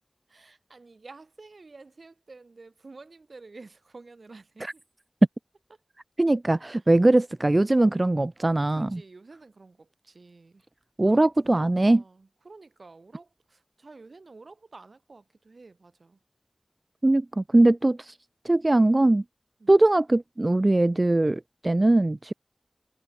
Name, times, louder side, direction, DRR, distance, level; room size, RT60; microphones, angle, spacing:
voice 1, 0.3-4.8 6.8-6.9 8.7-10.6 11.1-16.2 19.6-19.8, right 3 dB, 80° right, 3.7 m, -50 dB
voice 2, 6.2-9.0 11.0-12.0 17.0-18.1 18.4-19.2 19.7-22.3, right 2 dB, 40° right, 0.4 m, -21 dB
wide cardioid pair, 55°, 0 cm